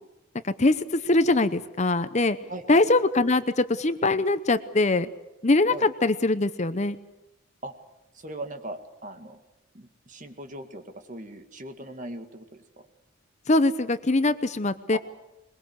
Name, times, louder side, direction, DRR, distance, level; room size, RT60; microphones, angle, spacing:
voice 1, 0.4-2.4 2.7-5.1 5.4-7.0 13.5-15.0, left 2 dB, 35° left, 12 dB, 0.8 m, -22 dB
voice 2, 2.5-2.8 5.7-5.9 7.6-7.7 8.1-9.4 9.7-10.8 11.1-12.6 14.9-15.0, right 1 dB, 40° right, 6 dB, 2.1 m, -39 dB
22.5 x 22.0 x 8.1 m, 0.96 s
head